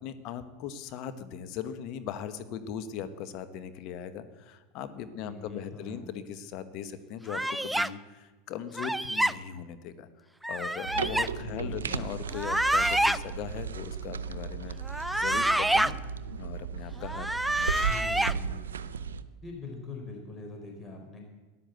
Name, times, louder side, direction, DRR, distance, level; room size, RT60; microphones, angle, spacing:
voice 1, 0.0-16.0 16.4-17.9, left 8 dB, 55° left, 10 dB, 1.3 m, -39 dB
voice 2, 5.2-6.0 11.4-12.1 17.9-18.6 19.4-21.2, left 3 dB, 25° left, 2 dB, 3.8 m, -43 dB
sound 1, 7.3-7.9 8.8-9.3 10.4-11.3 12.3-13.2 14.9-15.9 17.0-18.3, right 1 dB, 5° right, 0.5 m, -27 dB
sound 2, 10.8-19.2, right 6 dB, 90° right, 0.7 m, -35 dB
13.5 x 11.0 x 8.0 m, 1.2 s
hypercardioid pair, 100°, 0 cm